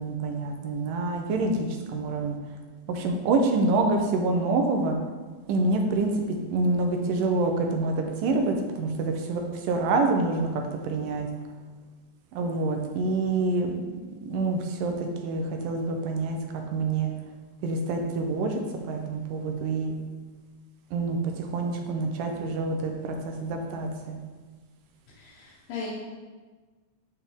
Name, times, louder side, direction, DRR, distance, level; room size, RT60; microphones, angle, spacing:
voice 1, 0.0-2.4 2.9-5.0 5.5-11.3 12.3-13.7 14.2-17.1 17.6-19.9 20.9-24.2, right 3 dB, 80° right, 3 dB, 2.2 m, -27 dB
voice 2, 25.1-25.9, left 5 dB, 80° left, -7 dB, 3.0 m, -38 dB
11.0 x 4.2 x 3.6 m, 1.4 s
omnidirectional pair, 4.0 m